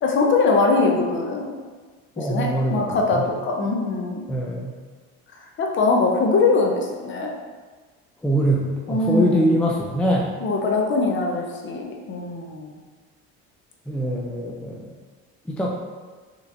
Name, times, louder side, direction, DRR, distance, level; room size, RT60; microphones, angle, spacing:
voice 1, 0.0-1.5 2.2-4.3 5.6-7.3 8.9-9.5 10.4-12.8, left 3 dB, 40° left, 1 dB, 0.7 m, -22 dB
voice 2, 2.2-3.2 4.3-4.7 8.2-10.4 13.9-14.9 15.5-15.7, right 1 dB, 5° left, -2 dB, 0.4 m, -23 dB
5.3 x 3.1 x 2.6 m, 1.4 s
cardioid pair, 115°, 31 cm